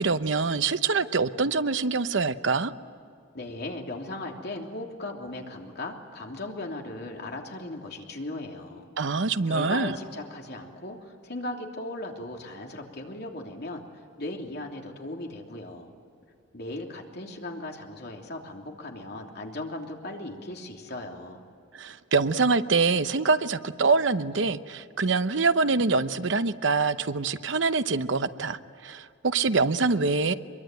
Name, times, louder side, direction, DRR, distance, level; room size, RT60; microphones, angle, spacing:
voice 1, 0.0-2.7 9.0-10.0 21.7-30.3, right 4 dB, 70° right, 12 dB, 0.9 m, -25 dB
voice 2, 3.3-8.9 9.5-13.8 14.2-15.9 16.5-21.4, left 2 dB, 60° left, 1 dB, 3.2 m, -37 dB
24.0 x 23.0 x 9.1 m, 2.4 s
head